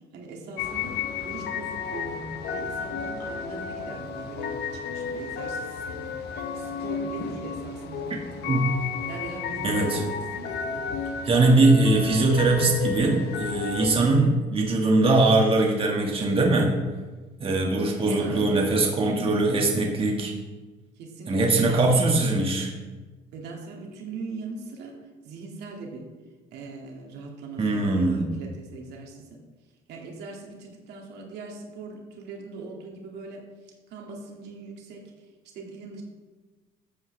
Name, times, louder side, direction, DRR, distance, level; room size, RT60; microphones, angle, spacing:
voice 1, 0.1-4.6 4.9-6.2 6.5-8.6 9.1-10.9 18.1-18.6 19.0-19.3 21.0-22.1 23.3-24.9 25.2-26.0 26.5-29.4 29.9-35.3 35.5-36.0, right 3 dB, 80° right, 0 dB, 2.3 m, -40 dB
sound 1, 0.6-14.0, left 6 dB, 75° left, 1.1 m, -33 dB
voice 2, 9.6-10.0 11.3-16.7 17.4-20.3 21.3-22.7 27.6-28.3, right 2 dB, 35° right, 0 dB, 1.8 m, -21 dB
14.0 x 8.2 x 3.4 m, 1.3 s
cardioid pair, 110°, 17 cm